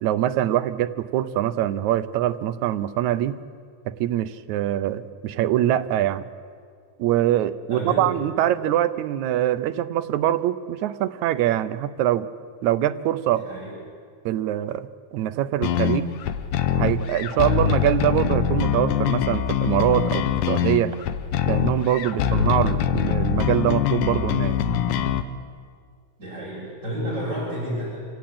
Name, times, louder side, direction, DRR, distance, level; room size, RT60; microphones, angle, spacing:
voice 1, 0.0-3.4 3.9-6.3 7.0-12.3 12.6-13.5 14.3-16.1 16.8-21.0 21.5-24.6, right 12 dB, 75° right, 11 dB, 2.0 m, -23 dB
voice 2, 7.7-8.1 13.3-13.7 26.2-28.0, equal, 20° right, -8 dB, 7.8 m, -30 dB
sound 1, 15.6-25.2, left 9 dB, 80° left, 2.4 m, -23 dB
27.5 x 16.5 x 8.6 m, 2.1 s
omnidirectional pair, 3.6 m